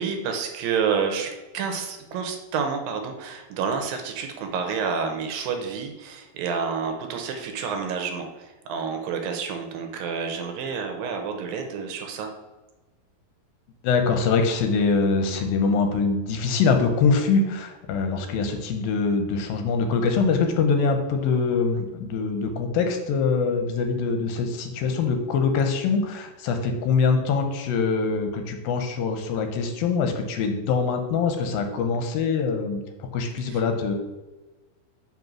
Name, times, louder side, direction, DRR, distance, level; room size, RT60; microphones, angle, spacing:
voice 1, 0.0-12.3 33.4-33.6, right 6 dB, 75° right, 4 dB, 2.4 m, -29 dB
voice 2, 13.8-33.9, left 4 dB, 80° left, 5 dB, 2.4 m, -23 dB
5.4 x 5.3 x 6.1 m, 1.1 s
omnidirectional pair, 4.4 m